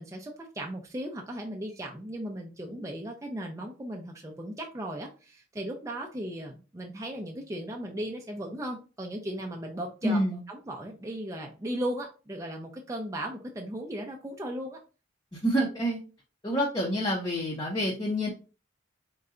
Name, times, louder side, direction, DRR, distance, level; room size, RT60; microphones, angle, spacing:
voice 1, 0.0-10.2 10.5-14.8, right 1 dB, 15° right, 1 dB, 0.5 m, -36 dB
voice 2, 10.0-10.4 15.3-16.0 16.4-18.3, equal, 20° left, -2 dB, 0.7 m, -27 dB
3.8 x 2.2 x 3.7 m, 0.34 s
head